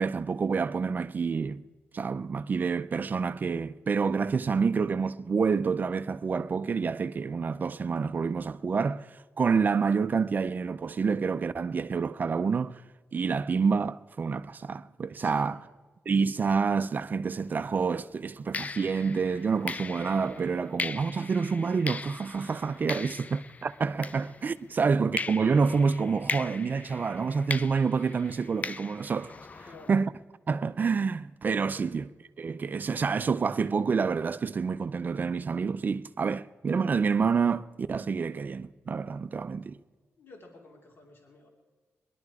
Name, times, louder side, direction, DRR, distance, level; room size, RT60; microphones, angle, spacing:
voice 1, 0.0-1.6 1.9-12.8 13.1-15.6 16.1-29.4 29.9-30.1 30.5-32.1 32.4-39.8, right 5 dB, 40° right, 0.4 m, -28 dB
voice 2, 15.2-15.7 24.7-24.8 29.7-30.0 31.6-31.9 40.2-41.5, left 3 dB, 50° left, 2.5 m, -52 dB
sound 1, 17.4-17.6 18.5-24.7 25.2-29.9, left 4 dB, 30° left, 0.4 m, -39 dB
20.5 x 11.5 x 4.8 m
wide cardioid pair, 130°, 5 cm